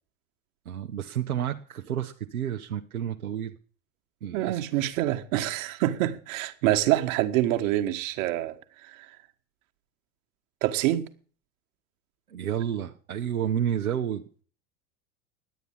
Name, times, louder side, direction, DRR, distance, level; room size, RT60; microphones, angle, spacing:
voice 1, 0.7-3.5 4.2-4.6 12.3-14.2, right 9 dB, 85° right, 1.1 m, -30 dB
voice 2, 4.3-8.6 8.8-9.1 10.6-11.1, right 14 dB, 65° right, 1.6 m, -26 dB
11.0 x 9.5 x 8.7 m
hypercardioid pair, 80°, 42 cm